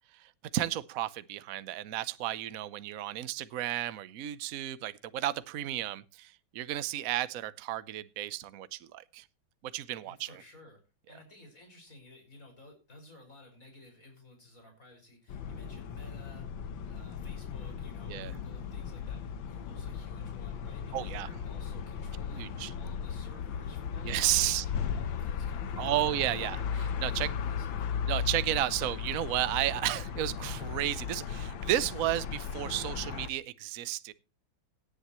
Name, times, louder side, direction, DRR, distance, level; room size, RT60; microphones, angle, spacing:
voice 1, 0.1-9.2 9.6-10.4 18.1-18.3 20.9-21.3 22.4-22.7 24.0-24.7 25.8-27.3 28.1-34.1, right 14 dB, 55° right, 15 dB, 1.0 m, -33 dB
voice 2, 10.0-10.8 11.1-16.5 16.8-25.9 27.1-27.9, left 1 dB, 40° left, 3 dB, 6.2 m, -54 dB
sound 1, 15.3-33.3, left 7 dB, 75° left, 1.8 m, -36 dB
18.0 x 10.5 x 3.1 m, 0.31 s
omnidirectional pair, 2.1 m